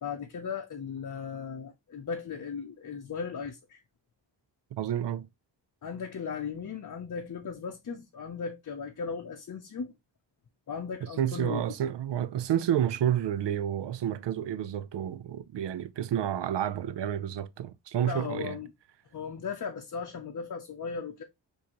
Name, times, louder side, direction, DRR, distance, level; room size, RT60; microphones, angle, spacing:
voice 1, 0.0-3.8 5.8-9.9 10.7-11.6 18.0-18.7 19.1-21.2, left 6 dB, 45° left, 0.6 m, -37 dB
voice 2, 4.7-5.3 11.2-18.5, right 10 dB, 70° right, 0.5 m, -30 dB
5.9 x 2.7 x 2.9 m
wide cardioid pair, 135°, 45 cm